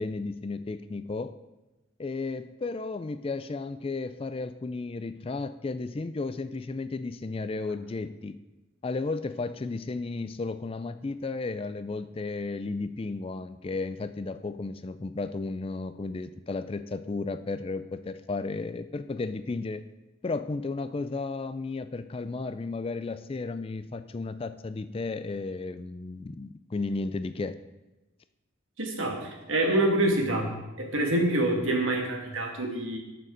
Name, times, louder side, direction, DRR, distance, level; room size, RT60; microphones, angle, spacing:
voice 1, 0.0-1.4 2.0-8.4 8.8-19.8 20.2-27.5, left 3 dB, 25° left, 11 dB, 0.3 m, -33 dB
voice 2, 28.8-30.5 30.8-33.0, right 1 dB, 70° right, 1 dB, 2.1 m, -26 dB
19.0 x 6.7 x 3.9 m, 1.0 s
head